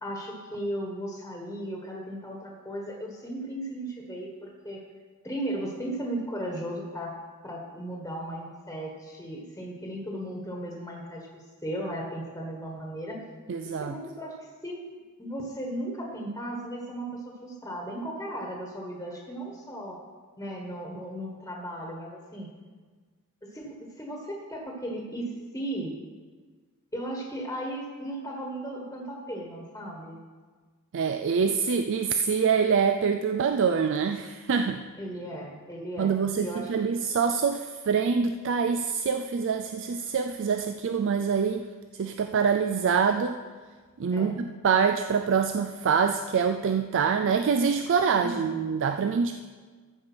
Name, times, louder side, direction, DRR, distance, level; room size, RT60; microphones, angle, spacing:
voice 1, 0.0-4.8 5.2-7.2 7.4-13.2 13.6-14.8 15.2-20.0 20.4-22.5 23.4-25.9 26.9-30.2 35.0-36.1 36.4-36.7 44.1-44.3 48.2-48.6, right 1 dB, 15° left, -1 dB, 1.4 m, -36 dB
voice 2, 13.5-14.0 30.9-34.8 36.0-41.7 42.0-43.4 44.0-49.3, right 6 dB, 60° right, 7 dB, 0.4 m, -25 dB
14.0 x 5.1 x 6.1 m, 1.5 s
head